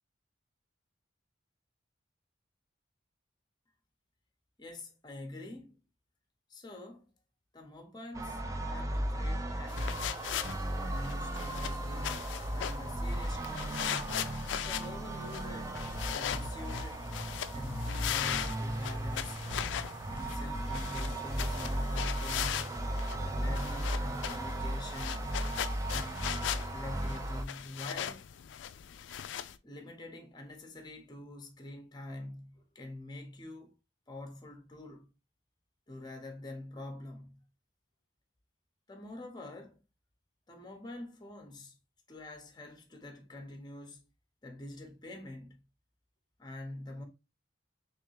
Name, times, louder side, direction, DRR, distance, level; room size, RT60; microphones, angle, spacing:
voice 1, 4.6-5.7 6.5-7.1 7.5-8.4 8.7-10.0 10.7-12.2 12.5-14.0 14.5-17.1 17.5-19.5 20.1-22.8 23.2-25.5 25.9-26.3 26.7-28.2 29.6-33.7 34.1-35.1 35.9-37.4 38.9-39.8 40.5-41.8 42.1-44.0 44.4-45.6 46.4-47.0, left 2 dB, 20° left, 0.8 m, -46 dB
sound 1, 8.1-27.4, right 1 dB, 15° right, 0.4 m, -36 dB
sound 2, 9.7-29.6, left 10 dB, 70° left, 0.3 m, -39 dB
3.5 x 3.1 x 3.1 m
head